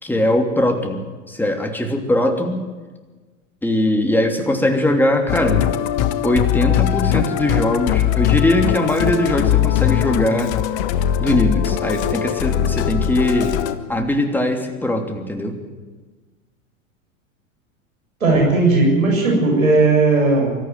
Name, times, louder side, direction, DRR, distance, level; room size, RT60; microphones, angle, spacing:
voice 1, 0.0-2.6 3.6-5.7 6.2-10.5 11.2-13.6 13.9-15.6, left 1 dB, 5° left, 3 dB, 3.1 m, -20 dB
Musical instrument, 5.3-13.7, left 11 dB, 55° left, 1.5 m, -20 dB
voice 2, 18.2-20.6, right 3 dB, 85° right, 0 dB, 7.3 m, -16 dB
25.0 x 14.5 x 9.4 m, 1.3 s
figure-of-eight pair, 90°, 40 cm